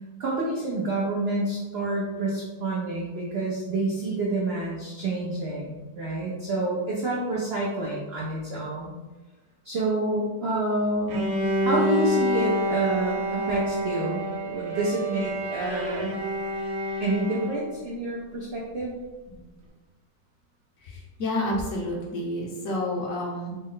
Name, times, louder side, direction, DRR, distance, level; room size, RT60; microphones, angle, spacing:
voice 1, 0.2-9.0 9.6-11.3 11.6-16.1 17.0-19.0, right 2 dB, 80° right, -4 dB, 0.5 m, -28 dB
Bowed string instrument, 11.1-17.8, equal, 60° right, 1.0 m, -28 dB
voice 2, 20.8-23.6, left 1 dB, 65° left, -2 dB, 0.9 m, -30 dB
4.1 x 2.1 x 3.7 m, 1.2 s
omnidirectional pair, 1.9 m